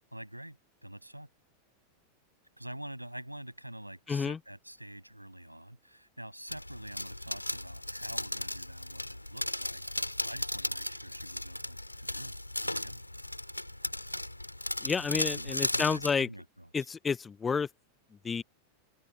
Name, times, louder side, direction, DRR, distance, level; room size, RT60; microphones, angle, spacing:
voice 1, 0.1-1.3 2.6-13.0 15.1-16.9, right 1 dB, 90° right, 7.5 m, -46 dB
voice 2, 4.1-4.4 14.8-16.3 16.7-17.7 18.2-18.4, left 5 dB, 15° left, 0.8 m, -30 dB
sound 1, 6.5-16.1, left 1 dB, 85° left, 6.5 m, -36 dB
open air
figure-of-eight pair, 90°, 0 cm